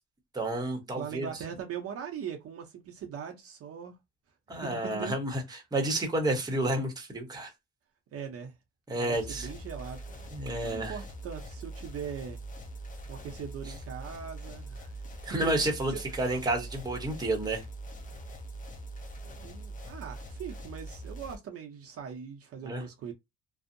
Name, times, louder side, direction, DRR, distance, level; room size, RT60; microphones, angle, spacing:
voice 1, 0.3-1.3 4.5-7.5 8.9-9.5 10.3-10.9 15.2-15.9 16.2-17.6 22.6-22.8, right 1 dB, 15° right, 0.8 m, -30 dB
voice 2, 1.0-4.0 4.5-5.1 8.1-8.5 8.9-10.3 10.6-12.4 13.1-15.5 15.9-16.3 19.4-23.1, right 7 dB, 50° right, 0.6 m, -41 dB
sound 1, 9.1-21.4, right 1 dB, 25° left, 0.5 m, -43 dB
2.6 x 2.0 x 2.5 m
cardioid pair, 120°, 29 cm